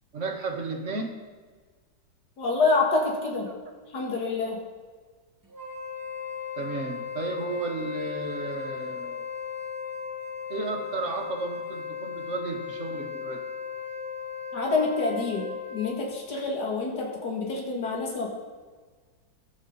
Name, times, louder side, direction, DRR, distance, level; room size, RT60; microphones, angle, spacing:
voice 1, 0.1-1.1 6.6-9.2 10.5-13.4, right 3 dB, 40° right, 2 dB, 1.8 m, -33 dB
voice 2, 2.4-3.5 3.9-4.6 14.5-18.3, left 3 dB, 55° left, -1 dB, 2.8 m, -27 dB
Wind instrument woodwind instrument, 5.5-16.1, left 7 dB, 10° right, 1.4 m, -36 dB
21.5 x 8.2 x 4.1 m, 1.5 s
omnidirectional pair, 2.2 m